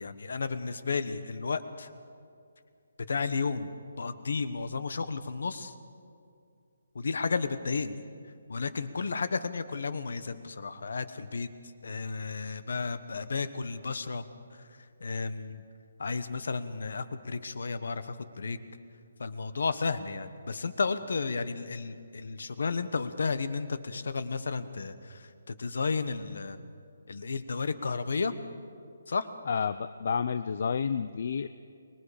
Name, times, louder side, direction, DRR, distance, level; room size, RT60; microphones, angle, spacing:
voice 1, 0.0-1.9 3.1-5.7 6.9-8.0 8.5-11.5 11.8-14.2 15.0-15.6 16.0-18.6 19.2-26.6 27.1-28.3 29.1-29.3, left 4 dB, 55° left, 12 dB, 1.2 m, -33 dB
voice 2, 29.5-31.5, left 6 dB, 40° left, 12 dB, 0.4 m, -30 dB
24.0 x 21.5 x 5.1 m, 2.3 s
hypercardioid pair, 180°, 0 cm